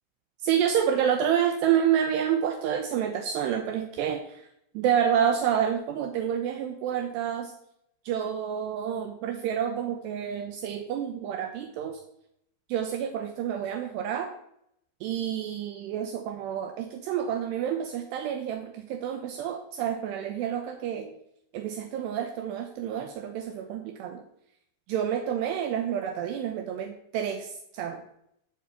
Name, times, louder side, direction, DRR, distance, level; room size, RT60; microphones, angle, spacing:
voice 1, 0.4-4.4 4.7-7.5 8.1-12.0 12.7-14.3 15.0-21.1 21.5-24.2 24.9-28.0, right 9 dB, 80° right, 5 dB, 2.5 m, -28 dB
11.5 x 5.0 x 8.3 m, 0.75 s
omnidirectional pair, 5.9 m